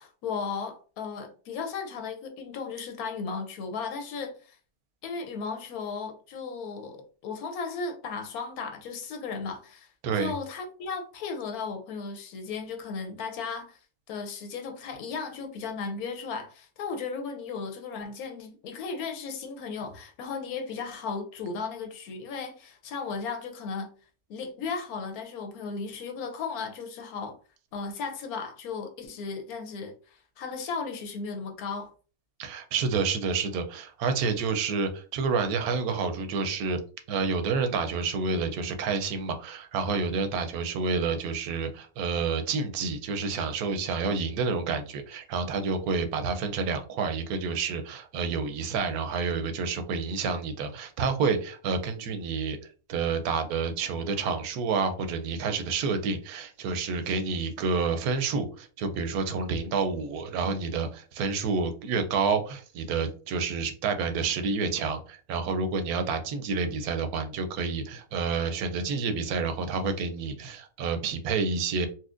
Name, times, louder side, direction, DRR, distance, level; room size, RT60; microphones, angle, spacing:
voice 1, 0.0-4.6 5.0-13.8 14.1-23.9 24.3-27.4 27.7-31.9, left 5 dB, 85° left, 1.2 m, -35 dB
voice 2, 32.4-36.8 37.1-52.6 52.9-71.9, right 4 dB, 85° right, 1.1 m, -29 dB
4.1 x 2.2 x 2.4 m
omnidirectional pair, 1.5 m